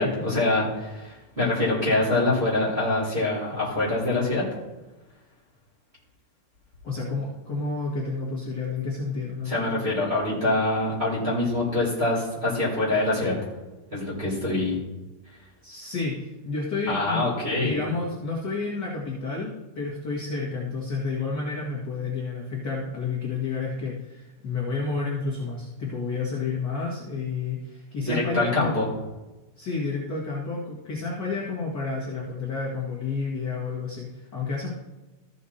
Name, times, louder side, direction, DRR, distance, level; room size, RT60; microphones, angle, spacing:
voice 1, 0.0-4.4 9.5-13.4 13.9-14.8 16.9-17.7 28.0-28.8, left 2 dB, 15° right, -10 dB, 3.6 m, -25 dB
voice 2, 6.8-9.7 15.6-17.2 17.6-28.8 29.6-34.7, left 4 dB, 40° left, -6 dB, 1.9 m, -30 dB
14.5 x 6.6 x 4.3 m, 1.1 s
omnidirectional pair, 3.9 m